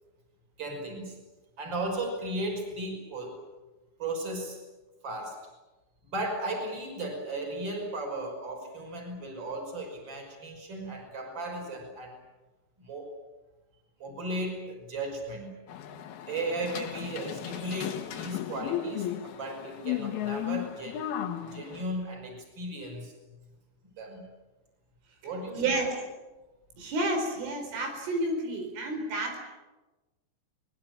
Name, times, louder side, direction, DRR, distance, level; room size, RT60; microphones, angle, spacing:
voice 1, 0.6-1.2 1.6-3.4 4.0-4.6 5.0-5.4 6.0-12.2 12.8-13.1 14.0-15.5 16.3-21.1 21.5-23.1 24.0-24.2 25.2-25.9, right 1 dB, 20° right, 2 dB, 6.0 m, -35 dB
sound 1, 15.7-21.8, left 10 dB, 65° left, 2.7 m, -35 dB
voice 2, 25.6-25.9 26.8-29.4, right 2 dB, 75° right, 4 dB, 6.9 m, -30 dB
23.0 x 22.0 x 8.9 m, 1.1 s
omnidirectional pair, 5.7 m